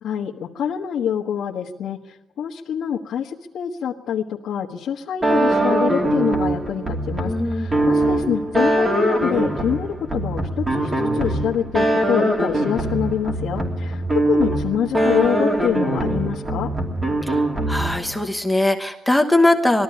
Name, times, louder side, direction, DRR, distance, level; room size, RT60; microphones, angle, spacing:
voice 1, 0.0-16.7, left 8 dB, 70° left, -3 dB, 1.4 m, -26 dB
sound 1, 5.2-18.1, right 1 dB, 20° right, 3.1 m, -22 dB
voice 2, 7.2-7.8 17.2-19.8, left 1 dB, 5° left, 4 dB, 1.1 m, -21 dB
20.5 x 13.5 x 9.8 m, 1.1 s
cardioid pair, 155°, 0 cm